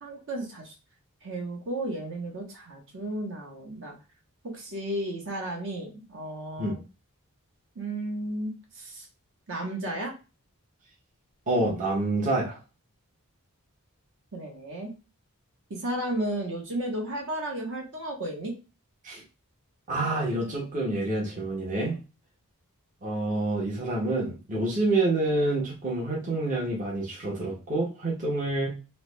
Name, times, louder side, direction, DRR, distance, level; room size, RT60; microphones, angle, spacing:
voice 1, 0.0-0.7 1.2-3.9 4.4-6.8 7.7-9.1 9.5-10.1 14.3-14.9 15.7-18.5, right 1 dB, 60° right, 0 dB, 1.0 m, -33 dB
voice 2, 11.5-12.6 19.0-19.2 19.9-22.0 23.0-28.7, right 2 dB, 35° right, -3 dB, 0.8 m, -27 dB
3.1 x 2.1 x 3.2 m, 0.31 s
head